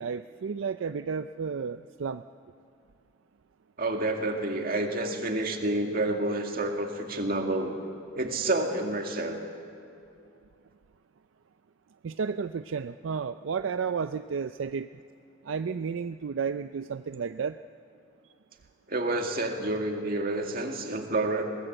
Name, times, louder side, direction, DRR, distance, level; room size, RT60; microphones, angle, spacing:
voice 1, 0.0-2.2 12.0-14.9 15.5-17.6, right 6 dB, 80° right, 10 dB, 0.4 m, -32 dB
voice 2, 3.8-7.7 8.1-9.4 18.9-21.4, right 2 dB, 50° right, 3 dB, 2.2 m, -29 dB
22.0 x 18.5 x 8.0 m, 2.5 s
head